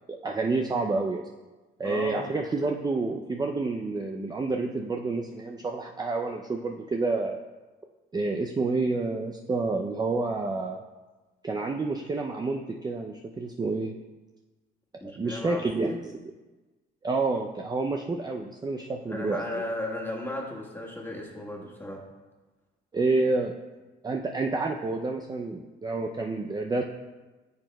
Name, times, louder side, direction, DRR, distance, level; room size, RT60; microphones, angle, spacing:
voice 1, 0.1-1.2 1.8-7.4 8.1-10.8 11.4-13.9 15.2-16.2 17.0-19.6 22.9-23.6 24.0-26.8, right 3 dB, 20° right, 2 dB, 0.4 m, -29 dB
voice 2, 1.8-2.3 15.0-16.0 19.1-22.0, left 1 dB, 10° left, -2 dB, 1.6 m, -35 dB
10.0 x 6.3 x 2.2 m, 1.2 s
cardioid pair, 90°, 20 cm